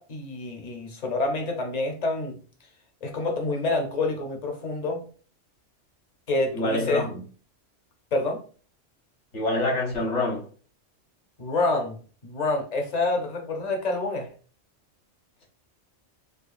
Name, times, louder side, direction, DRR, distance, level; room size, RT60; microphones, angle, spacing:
voice 1, 0.0-2.4 3.0-5.0 6.3-7.1 8.1-8.4 11.4-11.9 12.2-14.3, left 2 dB, 40° left, 0.7 m, -27 dB
voice 2, 6.5-7.2 9.3-10.4, left 1 dB, 70° left, 1.6 m, -26 dB
4.9 x 2.2 x 2.5 m
omnidirectional pair, 1.3 m